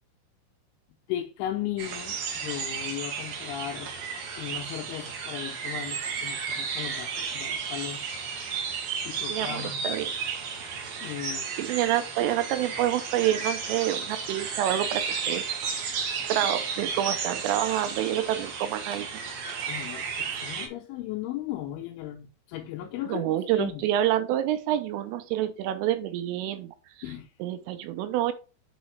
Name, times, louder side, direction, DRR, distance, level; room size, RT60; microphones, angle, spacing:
voice 1, 1.1-3.9 4.4-8.0 8.5-8.6 9.1-9.9 11.0-11.5 19.7-23.3 23.5-23.8 27.0-27.3, left 12 dB, 80° left, 2.9 m, -36 dB
sound 1, 1.8-20.7, right 6 dB, 60° right, 2.8 m, -33 dB
voice 2, 9.3-10.1 11.6-15.5 15.7-19.2 23.1-26.7 27.4-28.3, right 12 dB, 80° right, 3.1 m, -28 dB
6.6 x 6.3 x 3.3 m
omnidirectional pair, 5.9 m